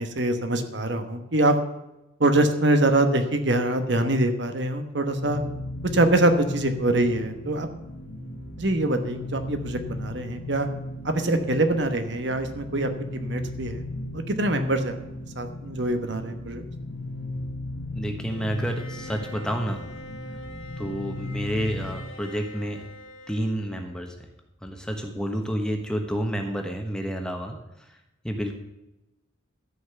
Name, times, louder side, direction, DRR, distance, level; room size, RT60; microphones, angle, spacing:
voice 1, 0.0-1.6 2.2-5.4 5.9-7.7 8.6-10.7 11.0-13.8 14.1-15.0 15.4-16.6, right 1 dB, 55° right, 7 dB, 1.2 m, -24 dB
sound 1, 5.0-22.0, left 1 dB, 65° left, 1.5 m, -36 dB
voice 2, 17.9-19.8 20.8-22.8 23.3-24.1 24.6-28.0 28.2-28.6, equal, 5° left, 3 dB, 1.2 m, -29 dB
Bowed string instrument, 18.3-24.3, left 2 dB, 80° left, 2.0 m, -45 dB
13.0 x 5.7 x 8.1 m, 0.94 s
head